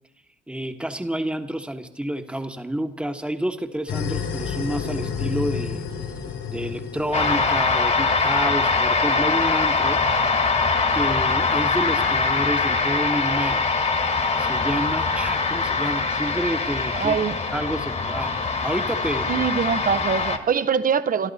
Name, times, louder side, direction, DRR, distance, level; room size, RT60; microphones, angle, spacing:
voice 1, 0.5-5.8 6.5-10.0 10.9-13.6 14.4-17.1 17.5-18.3 18.6-19.4, right 1 dB, 5° right, 1.3 m, -29 dB
sound 1, 3.9-8.7, left 7 dB, 85° left, 3.8 m, -31 dB
sound 2, 7.1-20.4, left 4 dB, 35° left, 1.6 m, -23 dB
voice 2, 16.9-17.4 19.3-21.3, right 7 dB, 45° right, 0.9 m, -23 dB
25.5 x 12.5 x 4.2 m
cardioid pair, 90°, 20 cm